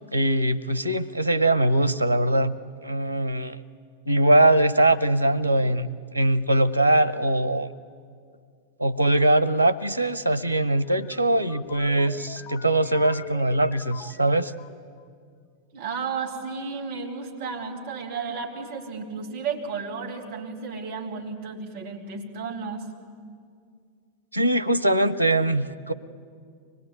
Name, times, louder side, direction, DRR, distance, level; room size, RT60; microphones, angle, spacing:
voice 1, 0.1-2.6 2.8-3.6 4.1-7.7 8.8-14.5 24.3-25.9, right 1 dB, 90° left, 17 dB, 0.6 m, -22 dB
sound 1, 10.8-15.0, left 8 dB, 35° left, 0.9 m, -43 dB
voice 2, 15.7-22.9, right 5 dB, 50° right, -2 dB, 3.4 m, -33 dB
24.0 x 19.5 x 9.1 m, 2.3 s
figure-of-eight pair, 90°, 0 cm